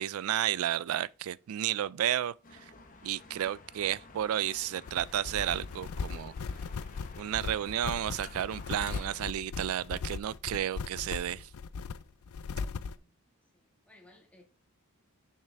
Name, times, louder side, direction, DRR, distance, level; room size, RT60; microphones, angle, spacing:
voice 1, 0.0-2.7 3.0-6.3 7.2-11.5, right 11 dB, 70° right, 0.3 m, -32 dB
sound 1, 2.4-9.2, left 4 dB, 40° left, 1.1 m, -52 dB
sound 2, 4.9-13.0, left 5 dB, 70° left, 0.4 m, -38 dB
voice 2, 12.7-13.2 13.5-14.4, left 1 dB, 5° left, 1.8 m, -60 dB
6.6 x 5.8 x 3.4 m
head